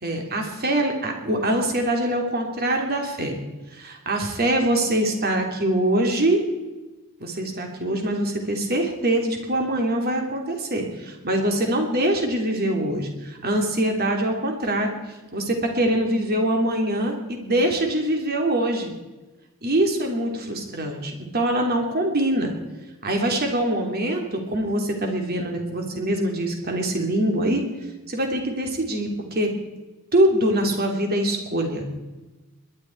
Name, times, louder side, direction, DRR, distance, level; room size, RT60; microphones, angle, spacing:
voice 1, 0.0-3.4 3.7-6.4 7.2-14.9 15.3-18.9 19.6-22.5 23.0-27.6 28.1-29.5 30.1-31.9, right 1 dB, 45° right, 3 dB, 3.0 m, -24 dB
21.5 x 11.5 x 4.6 m, 1.2 s
head